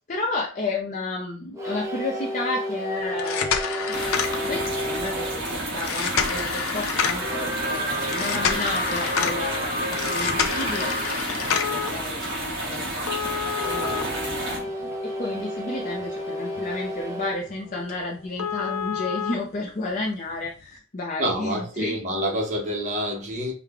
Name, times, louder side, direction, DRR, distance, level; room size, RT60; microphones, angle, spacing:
voice 1, 0.1-3.6 4.5-9.8 10.1-13.1 13.7-22.0, left 2 dB, 35° left, 0.6 m, -32 dB
sound 1, 1.5-5.4 7.1-11.2 13.5-18.4, equal, 15° right, 0.9 m, -31 dB
sound 2, 3.1-4.8 5.8-7.3 8.1-9.4 9.9-11.9 13.1-14.9 15.4-15.5 16.0-16.1 16.6-16.7 17.0-17.1 17.5-17.6 17.9-18.0 18.4-19.3 20.4-20.5, left 7 dB, 80° left, 0.6 m, -28 dB
sound 3, 3.9-14.6, right 1 dB, 50° right, 2.0 m, -31 dB
voice 2, 21.2-23.5, equal, 35° right, 1.1 m, -27 dB
4.7 x 2.3 x 3.5 m
head